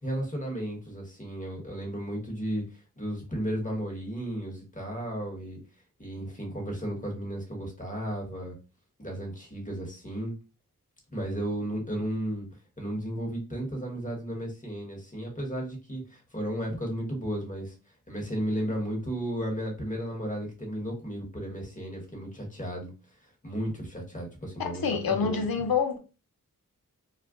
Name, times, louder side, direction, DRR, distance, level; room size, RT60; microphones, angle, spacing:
voice 1, 0.0-2.6 3.0-5.6 6.0-8.5 9.0-10.3 11.1-12.5 12.8-17.7 18.1-22.9 23.4-25.4, right 1 dB, 25° left, 1.1 m, -34 dB
voice 2, 24.6-26.0, left 6 dB, 90° left, 0.6 m, -27 dB
2.4 x 2.1 x 3.6 m
wide cardioid pair, 75°, 34 cm